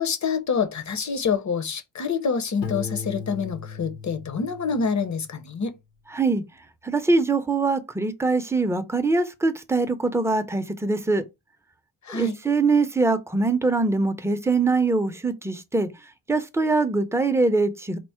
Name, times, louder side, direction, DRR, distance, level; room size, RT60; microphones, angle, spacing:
voice 1, 0.0-5.8 12.0-12.4, left 5 dB, 40° left, 0.8 m, -26 dB
Piano, 2.6-5.4, left 6 dB, 70° left, 1.0 m, -37 dB
voice 2, 6.8-11.2 12.1-15.9 16.3-18.0, right 3 dB, 5° right, 0.6 m, -23 dB
4.4 x 2.0 x 4.3 m
wide cardioid pair, 100°, 44 cm